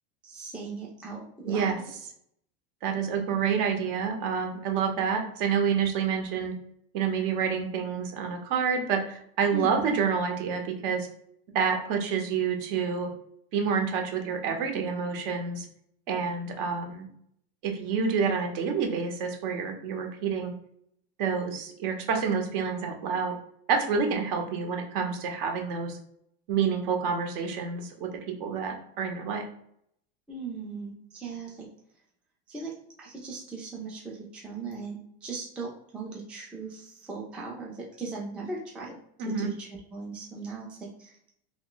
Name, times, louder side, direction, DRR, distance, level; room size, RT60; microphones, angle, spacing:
voice 1, 0.2-1.9 9.5-9.8 30.3-31.7 32.5-32.7 33.0-39.0 39.3-41.1, right 3 dB, 5° right, -3 dB, 0.3 m, -38 dB
voice 2, 1.4-1.8 2.8-6.5 6.9-11.1 11.5-13.1 13.5-15.7 16.1-17.1 17.6-20.5 21.2-23.3 23.7-26.0 26.5-28.1 28.4-29.5 39.2-39.5, right 6 dB, 55° right, 4 dB, 0.9 m, -28 dB
3.0 x 2.2 x 3.8 m, 0.70 s
supercardioid pair, 150°, 31 cm